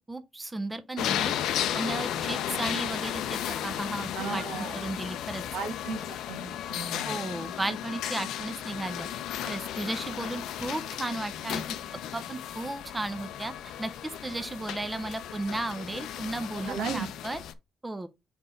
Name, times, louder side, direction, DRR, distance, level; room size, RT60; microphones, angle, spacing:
voice 1, 0.1-4.4 4.7-5.4 7.0-9.1 9.4-11.8 12.1-13.5 13.8-17.4 17.8-18.1, right 2 dB, 15° right, 0.7 m, -35 dB
sound 1, 1.0-17.5, left 11 dB, 85° left, 0.5 m, -34 dB
voice 2, 4.1-4.8 5.5-7.1 16.6-17.1, right 5 dB, 85° right, 1.5 m, -35 dB
4.4 x 4.4 x 5.1 m
cardioid pair, 90°, 0 cm